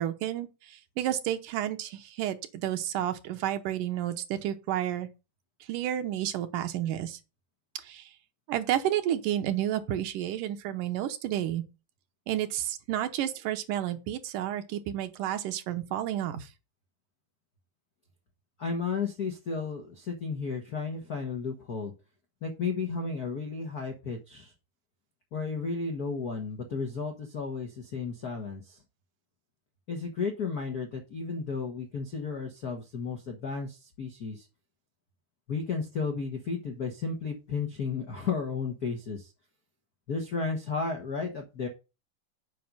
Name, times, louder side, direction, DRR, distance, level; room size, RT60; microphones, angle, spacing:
voice 1, 0.0-5.1 5.7-7.2 7.8-8.1 8.5-11.6 12.3-16.5, right 12 dB, 80° right, 2.4 m, -31 dB
voice 2, 18.6-21.9 22.4-24.5 25.3-28.8 29.9-34.5 35.5-39.3 40.1-41.7, left 5 dB, 90° left, 0.8 m, -33 dB
7.7 x 5.2 x 5.4 m
omnidirectional pair, 3.8 m